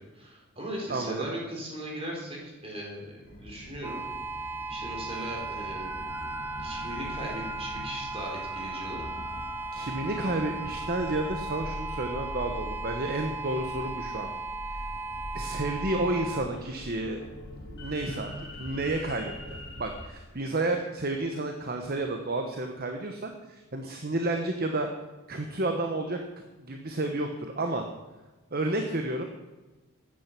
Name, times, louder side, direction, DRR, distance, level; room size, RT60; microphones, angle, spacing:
voice 1, 0.1-4.0 4.7-6.0 6.6-9.1, equal, 25° right, -2 dB, 4.1 m, -38 dB
voice 2, 0.9-1.3 9.7-14.3 15.3-17.2 17.6-18.3 18.6-24.9 25.3-26.2 26.6-27.9 28.5-29.2, right 2 dB, 45° right, 4 dB, 1.1 m, -31 dB
sound 1, 3.3-20.1, left 1 dB, 50° left, 2.1 m, -42 dB
sound 2, 3.8-16.4, right 3 dB, 10° right, 0.7 m, -37 dB
14.5 x 10.0 x 6.0 m, 1.2 s
head